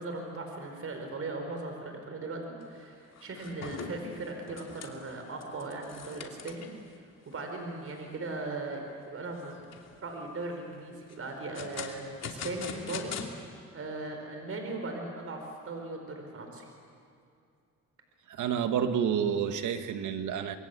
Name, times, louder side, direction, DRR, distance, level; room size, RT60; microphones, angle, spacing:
voice 1, 0.0-6.7 7.2-9.6 10.0-16.7, right 2 dB, 50° right, 4 dB, 4.9 m, -38 dB
sound 1, 2.6-2.8 3.1-6.8 7.3-7.4 7.9-8.0 8.4-8.9 9.4-10.0 11.1-13.3, left 6 dB, 60° left, 2.9 m, -42 dB
voice 2, 18.3-20.6, right 8 dB, 80° right, 8 dB, 1.8 m, -29 dB
27.0 x 23.0 x 8.4 m, 2.5 s
cardioid pair, 90°, 30 cm